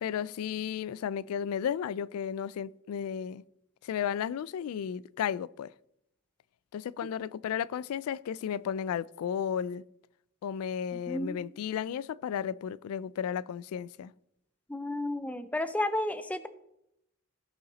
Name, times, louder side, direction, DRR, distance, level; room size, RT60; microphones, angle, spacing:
voice 1, 0.0-3.4 3.8-5.7 6.7-9.8 10.4-14.1, left 8 dB, 90° left, 0.3 m, -33 dB
voice 2, 11.1-11.4 14.7-16.5, left 1 dB, 5° left, 0.5 m, -32 dB
16.0 x 5.7 x 4.0 m
head